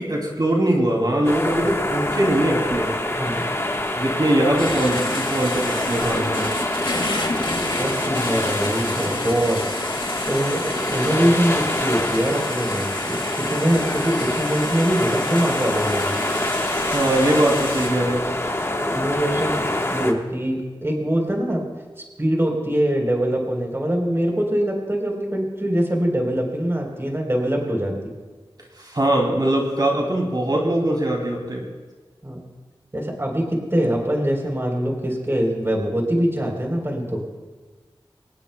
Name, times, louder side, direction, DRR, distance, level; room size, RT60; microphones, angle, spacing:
voice 1, 0.0-2.9 4.0-6.5 16.9-18.3 28.8-31.6, right 1 dB, 50° right, -1 dB, 2.8 m, -21 dB
sound 1, 1.2-20.1, left 1 dB, 30° left, 1.4 m, -26 dB
voice 2, 3.2-3.6 5.4-5.5 7.5-9.6 10.3-16.2 18.8-21.7 22.2-27.9 32.2-32.4 32.9-37.2, equal, 25° right, 1 dB, 3.9 m, -23 dB
sound 2, 4.6-17.9, left 2 dB, 70° left, 2.6 m, -31 dB
23.5 x 19.5 x 2.3 m, 1.3 s
wide cardioid pair, 55°, 9 cm